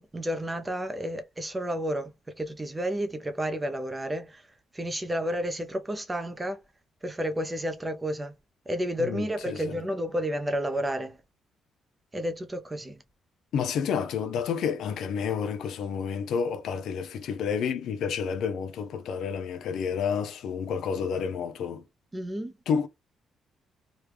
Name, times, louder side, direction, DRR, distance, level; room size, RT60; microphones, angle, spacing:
voice 1, 0.0-4.5 4.7-6.6 7.0-8.3 8.7-11.2 12.1-13.0 22.1-22.5, equal, 15° right, 0.5 m, -31 dB
voice 2, 9.0-9.8 13.5-21.8 22.7-22.9, left 7 dB, 75° left, 0.6 m, -30 dB
3.1 x 2.2 x 3.3 m
cardioid pair, 135°, 0 cm